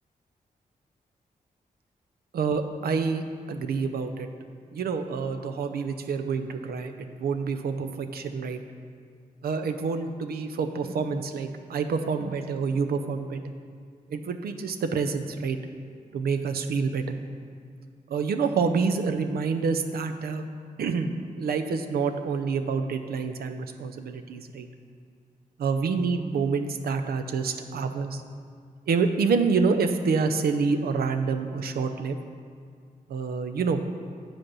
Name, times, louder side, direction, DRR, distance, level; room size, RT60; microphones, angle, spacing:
voice 1, 2.3-3.2 3.5-4.3 4.7-6.9 7.2-8.6 9.4-13.4 14.1-15.6 16.1-17.1 18.1-20.4 20.8-21.1 21.4-24.7 25.6-28.2 28.9-32.2 33.1-33.8, right 5 dB, 85° right, 7 dB, 0.6 m, -27 dB
8.6 x 5.1 x 6.2 m, 2.2 s
cardioid pair, 65°, 15 cm